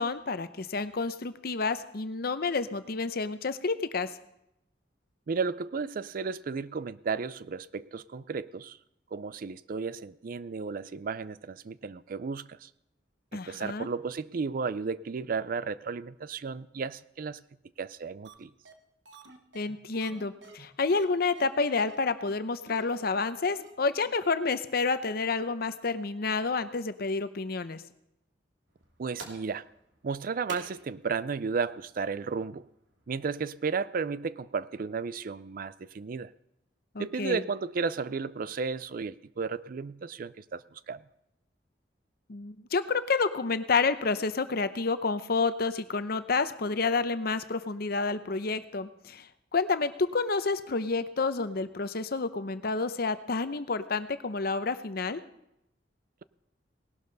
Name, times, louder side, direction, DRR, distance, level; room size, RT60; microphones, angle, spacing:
voice 1, 0.0-4.1 13.3-13.9 19.5-27.8 36.9-37.4 42.3-55.2, left 4 dB, 55° left, 12 dB, 0.8 m, -29 dB
voice 2, 5.3-8.8 9.1-12.7 13.3-17.4 17.8-18.5 29.0-29.6 30.0-32.6 33.1-36.3 37.0-41.0, right 5 dB, 50° right, 17 dB, 0.4 m, -33 dB
sound 1, 18.2-18.3 18.6-18.7 19.0-21.1 21.3-21.5 21.8-22.0 22.3-22.4 22.7-22.8 23.1-23.2 23.6-23.7 24.0-24.1 24.4-24.5, right 4 dB, 75° right, 1.3 m, -51 dB
sound 2, 28.7-33.7, right 3 dB, 90° right, 2.7 m, -50 dB
18.5 x 12.0 x 4.0 m, 0.82 s
head